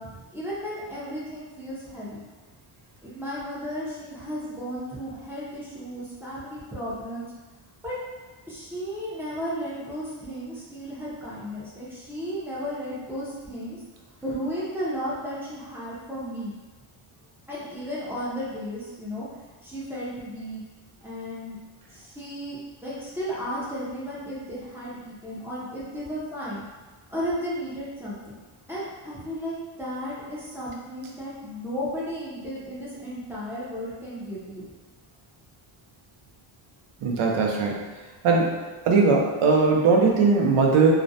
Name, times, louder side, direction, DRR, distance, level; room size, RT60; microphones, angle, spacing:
voice 1, 0.0-2.3 3.0-7.3 7.8-8.0 8.5-13.8 14.2-16.6 17.5-19.3 19.6-20.6 21.0-21.6 21.9-26.7 27.1-28.4 28.7-34.6, equal, 5° right, -9 dB, 0.5 m, -34 dB
voice 2, 37.0-37.8 38.2-38.6 38.9-40.9, right 4 dB, 85° right, 0 dB, 0.6 m, -19 dB
2.4 x 2.0 x 2.6 m, 1.3 s
wide cardioid pair, 140°, 49 cm